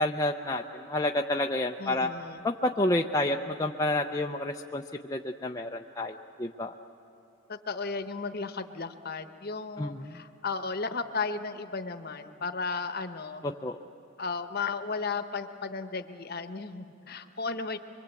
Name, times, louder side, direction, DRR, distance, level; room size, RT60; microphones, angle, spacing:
voice 1, 0.0-2.1 2.4-4.8 5.1-6.7 9.8-10.2 13.4-13.8, left 1 dB, 15° left, 2 dB, 0.5 m, -29 dB
voice 2, 1.8-2.5 7.5-13.4 14.2-17.8, left 4 dB, 45° left, 9 dB, 0.9 m, -34 dB
24.0 x 23.5 x 8.3 m, 2.9 s
head